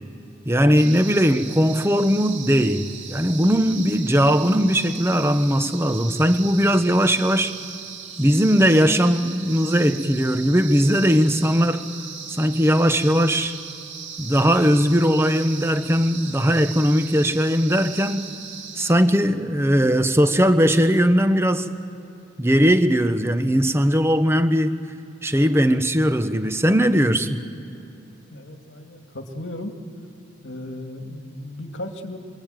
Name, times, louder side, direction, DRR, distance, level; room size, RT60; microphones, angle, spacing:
voice 1, 0.4-7.5 8.2-11.9 12.4-13.6 14.2-18.3 18.8-21.7 22.4-24.7 25.2-27.4, equal, 15° right, 0.9 m, -19 dB
sound 1, 0.8-18.9, right 6 dB, 70° right, 2.2 m, -38 dB
voice 2, 28.3-29.7 30.4-32.2, left 1 dB, 70° left, 2.1 m, -35 dB
26.5 x 22.5 x 9.1 m
head